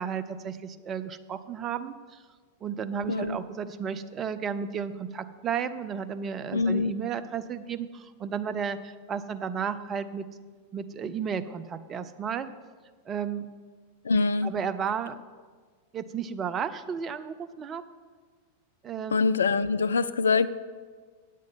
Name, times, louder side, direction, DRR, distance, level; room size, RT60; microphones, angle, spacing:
voice 1, 0.0-2.2 2.6-10.3 10.7-12.5 13.1-13.5 14.4-15.2 15.9-17.8 18.8-19.2, right 7 dB, 25° right, 12 dB, 0.5 m, -33 dB
voice 2, 3.1-3.4 6.5-6.9 14.0-14.5 19.1-20.5, left 4 dB, 70° left, 14 dB, 0.3 m, -24 dB
8.8 x 7.4 x 5.4 m, 1.5 s
figure-of-eight pair, 90°, 0 cm